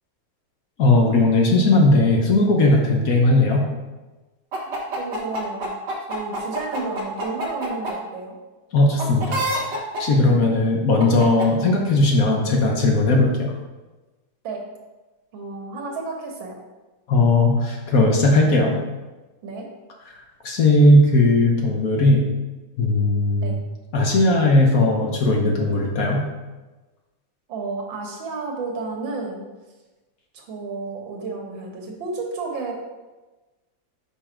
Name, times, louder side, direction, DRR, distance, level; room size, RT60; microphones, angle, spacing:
voice 1, 0.8-3.6 8.7-9.4 9.7-13.5 17.1-18.8 20.4-22.2 22.8-23.6 23.9-26.2, left 2 dB, 55° left, 1 dB, 1.2 m, -17 dB
sound 1, 4.5-7.9 9.0-10.0 11.0-11.5, right 1 dB, 65° right, 1.8 m, -27 dB
voice 2, 4.7-5.7 6.1-8.4 10.2-10.3 14.4-14.6 15.3-16.5 19.4-19.7 23.4-23.6 27.5-29.5 30.3-32.7, right 3 dB, 80° right, 1 dB, 1.9 m, -32 dB
5.5 x 5.2 x 5.0 m, 1.2 s
omnidirectional pair, 2.1 m